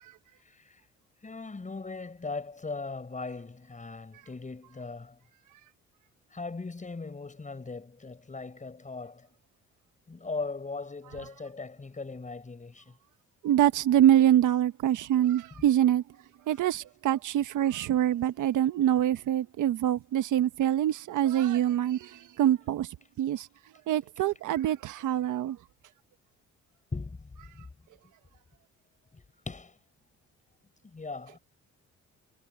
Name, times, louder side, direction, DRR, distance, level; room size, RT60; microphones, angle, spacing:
voice 1, 0.4-0.8 1.2-5.2 6.3-9.3 10.1-13.0 15.5-15.6 26.9-27.7 28.0-28.1 29.1-29.8 30.8-31.4, left 3 dB, 25° left, 6.6 m, -39 dB
voice 2, 13.4-16.0 16.5-22.9 23.2-23.5 23.9-25.6, right 11 dB, 80° right, 1.3 m, -25 dB
cardioid pair, 90°, 30 cm